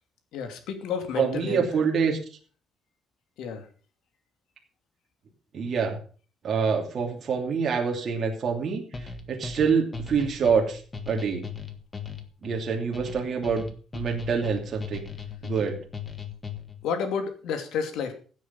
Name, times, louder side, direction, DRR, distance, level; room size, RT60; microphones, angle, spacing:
voice 1, 0.3-1.7 3.4-3.7 16.8-18.1, left 6 dB, 75° left, 7 dB, 2.6 m, -30 dB
voice 2, 1.2-2.2 5.5-6.0 6.4-10.8 11.1-11.4 12.4-13.7 13.9-15.0 15.4-15.8, right 5 dB, 35° right, 0 dB, 2.8 m, -26 dB
sound 1, 8.9-16.9, left 4 dB, 20° left, 1.5 m, -38 dB
16.0 x 8.3 x 5.5 m, 0.41 s
cardioid pair, 160°, 0 cm